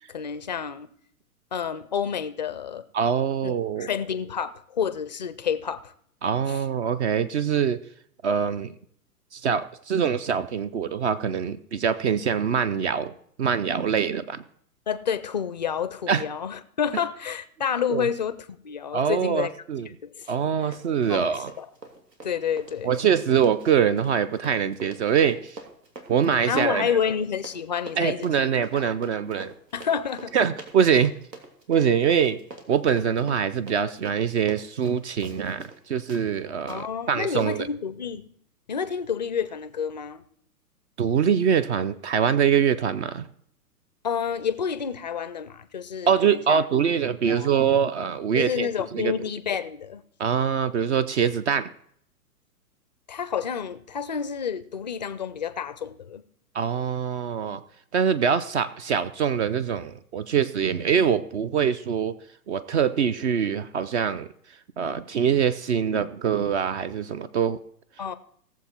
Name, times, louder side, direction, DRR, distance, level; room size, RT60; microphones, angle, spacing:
voice 1, 0.1-0.9 1.5-2.8 3.4-3.5 3.8-5.9 6.5-6.6 14.9-19.5 20.0-20.1 20.6-20.7 21.0-21.7 22.2-22.9 26.5-28.8 29.7-30.4 36.7-38.2 38.7-40.2 44.0-46.6 47.3-47.5 48.4-50.0 53.1-56.2 68.0-68.1, left 7 dB, 30° left, 0.3 m, -29 dB
voice 2, 2.9-3.9 6.2-7.8 8.2-8.7 9.3-13.1 13.4-14.4 16.1-16.2 17.9-18.0 18.9-19.9 20.3-21.5 22.8-25.6 26.1-26.9 28.0-29.5 30.3-31.1 31.7-32.4 32.7-37.7 41.0-43.3 46.1-49.1 50.2-51.7 56.5-57.6 57.9-62.1 62.5-64.3 64.8-67.6, right 7 dB, 45° right, 0.6 m, -24 dB
Run, 20.2-20.5 20.7-35.8 36.1-36.2 36.7-36.8 37.4-37.5, right 3 dB, 85° right, 2.6 m, -44 dB
17.0 x 7.2 x 4.3 m
hypercardioid pair, 135°, 48 cm